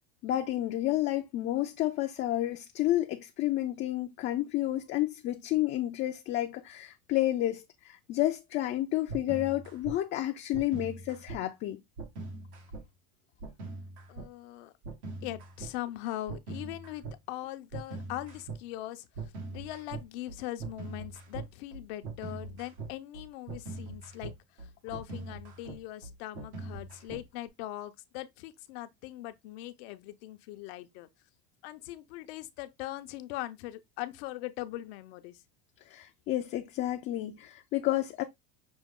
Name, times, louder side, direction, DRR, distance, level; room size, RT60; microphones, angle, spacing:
voice 1, 0.2-11.8 35.9-38.2, left 15 dB, 35° left, 0.4 m, -30 dB
sound 1, 9.1-9.9 10.5-11.4 12.0-12.8 13.4-14.3 14.8-15.7 16.3-17.2 17.7-18.6 19.1-27.5, right 3 dB, 90° right, 1.8 m, -42 dB
voice 2, 14.1-14.7 15.2-31.1 31.6-35.4, left 15 dB, 70° left, 0.7 m, -41 dB
6.1 x 2.3 x 3.6 m
supercardioid pair, 135°, 32 cm